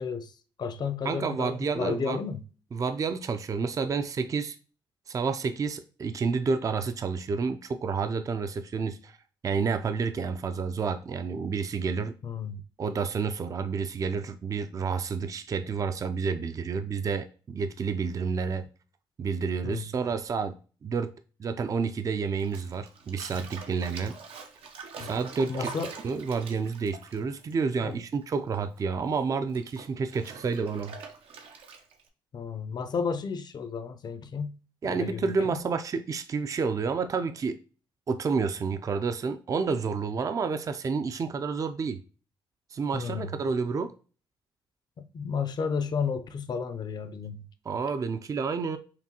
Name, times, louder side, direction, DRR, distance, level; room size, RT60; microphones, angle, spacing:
voice 1, 0.0-2.4 12.2-12.6 19.6-19.9 25.0-25.1 25.5-26.0 27.8-27.9 32.3-34.6 34.8-35.6 42.9-43.4 45.0-47.5, left 5 dB, 50° left, 0.5 m, -33 dB
voice 2, 1.0-2.2 2.7-4.6 5.1-9.2 9.4-12.1 12.8-18.7 19.2-20.6 20.8-21.1 21.4-24.2 25.0-25.7 26.0-31.0 34.8-37.6 38.1-42.0 42.7-43.9 47.7-48.8, right 5 dB, 35° right, 0.4 m, -29 dB
Bathtub (filling or washing), 22.4-28.2 28.5-32.1, right 5 dB, 80° right, 0.7 m, -44 dB
5.7 x 2.2 x 2.8 m
cardioid pair, 75°, 10 cm